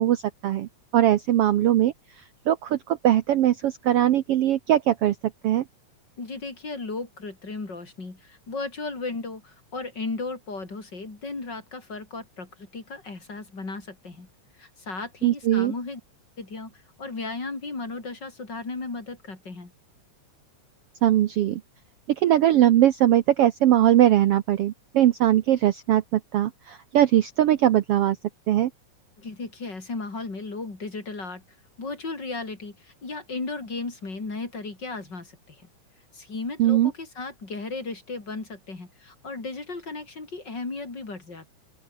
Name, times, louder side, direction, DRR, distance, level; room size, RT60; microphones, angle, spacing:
voice 1, 0.0-1.9 2.5-5.1 5.4-5.6 15.2-15.7 21.0-21.6 22.1-28.2 28.5-28.7 36.6-36.9, right 12 dB, 70° right, 1.5 m, -20 dB
voice 2, 6.2-14.3 14.6-16.0 16.4-19.7 29.2-31.4 31.8-35.7 36.1-41.5, left 3 dB, 35° left, 5.0 m, -35 dB
open air
omnidirectional pair, 3.5 m